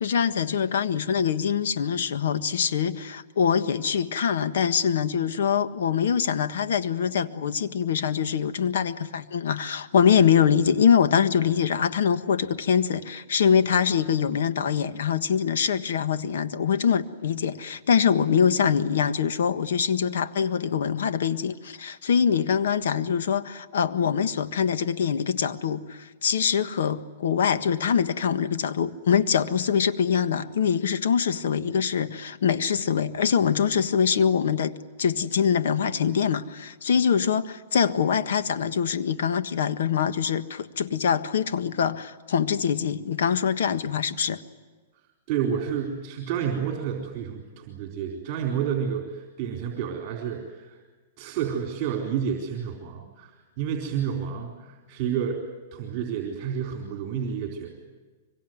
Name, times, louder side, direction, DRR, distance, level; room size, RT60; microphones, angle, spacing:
voice 1, 0.0-34.7 35.0-44.4, left 7 dB, 80° left, 12 dB, 1.5 m, -24 dB
voice 2, 45.3-50.8 51.2-55.4 55.7-57.7, right 8 dB, 40° right, 3 dB, 4.3 m, -30 dB
25.0 x 23.5 x 9.4 m, 1.3 s
hypercardioid pair, 155°, 0 cm